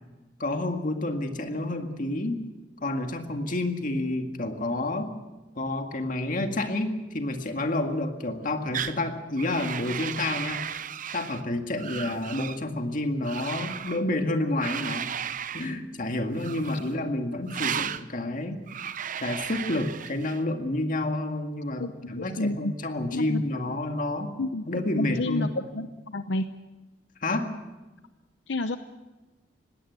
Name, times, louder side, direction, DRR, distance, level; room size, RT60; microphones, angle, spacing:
voice 1, 0.4-2.4 2.8-5.1 5.5-10.6 11.1-15.1 15.5-18.6 19.2-24.3 24.7-25.5 27.2-27.5, left 2 dB, 50° left, 5 dB, 2.0 m, -29 dB
sound 1, 8.7-9.0 9.4-11.4 11.8-12.6 13.2-14.0 14.6-15.7 16.4-16.9 17.5-18.0 18.7-20.4, right 8 dB, 50° right, 0.7 m, -34 dB
voice 2, 21.8-22.7 23.1-23.4 24.4-26.5 28.5-28.8, left 2 dB, 75° left, 10 dB, 0.8 m, -30 dB
20.5 x 17.0 x 8.1 m, 1.1 s
head